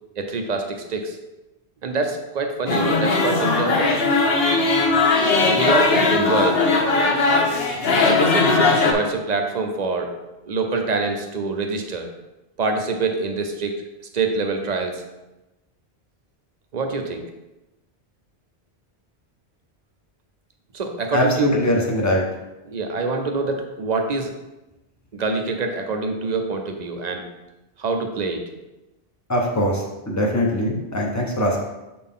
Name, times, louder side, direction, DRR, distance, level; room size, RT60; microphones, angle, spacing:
voice 1, 0.2-1.2 1.8-3.9 5.4-6.6 8.0-10.1 10.5-12.1 12.6-13.7 14.1-15.0 16.7-17.2 20.7-21.6 22.7-24.3 25.1-27.3 27.8-28.5, right 3 dB, 45° right, 4 dB, 0.8 m, -25 dB
sound 1, 2.7-8.9, left 3 dB, 70° left, 1.1 m, -19 dB
voice 2, 21.1-22.2 29.3-31.6, equal, 15° left, -1 dB, 0.9 m, -21 dB
6.5 x 4.3 x 3.6 m, 1.0 s
omnidirectional pair, 1.1 m